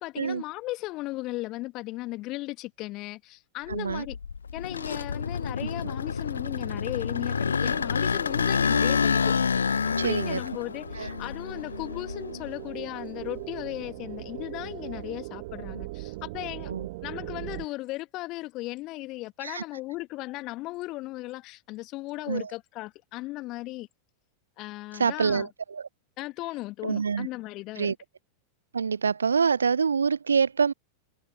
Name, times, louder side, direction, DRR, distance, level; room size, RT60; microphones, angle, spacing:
voice 1, 0.0-4.2 4.5-9.3 9.6-16.7 17.0-23.9 24.6-25.5 26.2-27.9, left 19 dB, 40° left, 1.9 m, -36 dB
sound 1, 3.7-12.7 13.2-15.0, left 6 dB, 75° left, 1.1 m, -28 dB
voice 2, 3.7-4.1 5.6-6.0 10.0-10.4 11.0-11.1 16.6-16.9 19.4-19.6 22.3-22.5 24.9-25.9 26.8-27.3 27.8-28.0 28.7-30.7, right 6 dB, 75° right, 0.5 m, -26 dB
sound 2, 8.7-17.7, right 21 dB, 50° right, 1.2 m, -41 dB
figure-of-eight pair, 90°, 0 cm